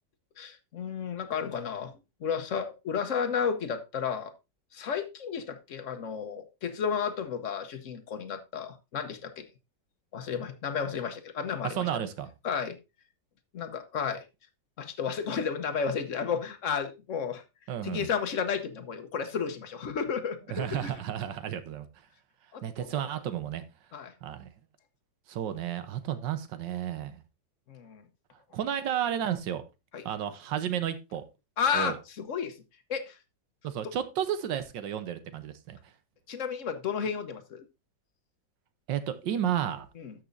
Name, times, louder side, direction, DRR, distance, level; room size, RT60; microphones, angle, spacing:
voice 1, 0.4-1.9 2.2-4.3 4.7-9.4 10.1-11.9 12.4-12.8 13.5-14.2 14.8-17.4 17.8-20.9 22.5-23.0 23.9-24.1 27.7-28.0 29.9-30.0 31.6-32.5 32.9-33.2 36.3-37.6 40.0-40.1, left 6 dB, 50° left, 1.1 m, -32 dB
voice 2, 11.6-12.3 17.7-18.1 20.5-21.9 22.6-23.6 24.2-24.5 25.3-27.2 28.5-29.6 30.0-31.2 31.7-32.0 33.6-35.8 38.9-39.9, right 10 dB, 75° right, 1.6 m, -32 dB
13.0 x 6.2 x 2.6 m
omnidirectional pair, 2.0 m